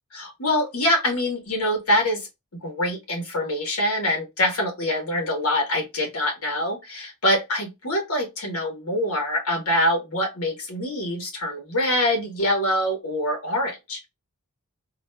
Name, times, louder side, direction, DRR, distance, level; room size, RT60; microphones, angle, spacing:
voice 1, 0.1-2.3 2.6-14.0, left 1 dB, 70° left, 1.3 m, -24 dB
3.8 x 2.4 x 2.2 m
head